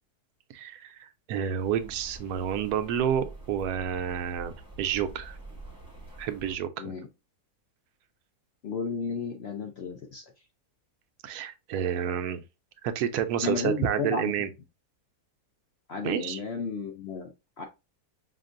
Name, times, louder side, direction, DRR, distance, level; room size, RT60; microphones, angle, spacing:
voice 1, 0.5-5.4 6.2-6.9 11.2-12.4 12.8-14.5 16.0-16.4, right 9 dB, 80° right, 1.1 m, -29 dB
Rain, 1.5-6.5, right 2 dB, 5° right, 1.0 m, -46 dB
voice 2, 8.6-10.2 13.4-14.3 15.9-17.6, left 4 dB, 65° left, 0.6 m, -33 dB
5.7 x 2.4 x 2.4 m
omnidirectional pair, 1.7 m